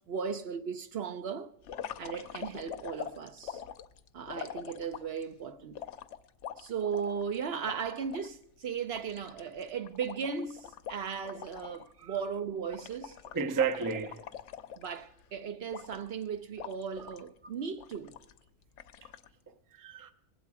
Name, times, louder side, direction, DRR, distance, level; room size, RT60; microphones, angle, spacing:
voice 1, 0.1-1.5 2.0-3.6 4.1-5.8 6.6-13.2 14.8-18.1, right 6 dB, 60° right, 0.9 m, -36 dB
sound 1, 1.6-5.2 5.8-8.3 8.6-8.7 8.9-11.9 12.1-12.4 12.7-15.2 15.7-16.2 16.6-17.3 17.8-18.4 18.8-19.3, left 9 dB, 75° left, 0.9 m, -44 dB
voice 2, 13.3-14.2 17.0-17.2 19.0-19.1 19.5-20.1, right 6 dB, 25° right, 0.5 m, -33 dB
20.0 x 8.3 x 4.8 m
omnidirectional pair, 1.3 m